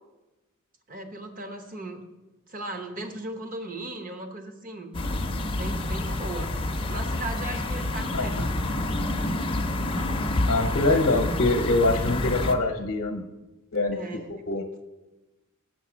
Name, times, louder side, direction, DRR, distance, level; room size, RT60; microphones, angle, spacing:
voice 1, 0.9-2.1 2.5-4.9 5.5-6.5 6.9-8.5 13.9-14.3, right 2 dB, 40° right, 6 dB, 1.0 m, -37 dB
sound 1, 4.9-12.6, left 1 dB, 25° left, 0.6 m, -28 dB
voice 2, 8.1-8.5 10.5-13.3 13.7-14.0 14.3-14.7, left 2 dB, 60° left, 3 dB, 0.8 m, -24 dB
7.9 x 6.3 x 6.1 m, 1.1 s
head